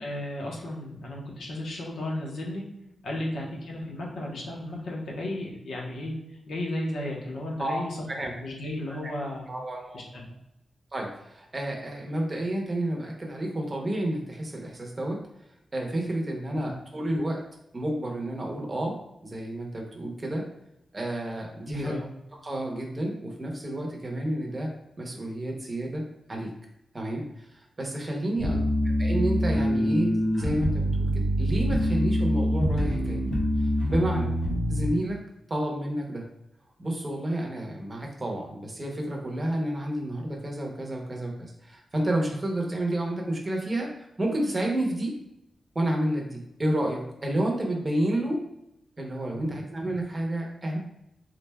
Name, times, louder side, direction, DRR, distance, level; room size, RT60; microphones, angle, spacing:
voice 1, 0.0-2.6 3.0-9.5 9.9-10.2 16.5-16.7 21.6-22.0 28.4-28.6 49.3-49.5, left 1 dB, 90° left, -2 dB, 1.0 m, -34 dB
voice 2, 7.6-8.3 8.9-9.1 9.5-10.2 10.9-15.2 15.7-17.4 17.7-19.0 19.2-20.4 20.9-22.0 22.4-24.7 25.0-26.0 26.3-26.5 26.9-28.6 29.0-31.1 31.4-33.2 33.6-34.3 34.7-35.2 35.5-36.2 36.8-45.1 45.7-48.4 49.0-50.8, right 1 dB, 20° right, 0 dB, 0.7 m, -30 dB
sound 1, 28.4-34.9, equal, 55° left, 1.0 m, -25 dB
3.7 x 3.2 x 2.2 m, 0.85 s
wide cardioid pair, 165°, 0 cm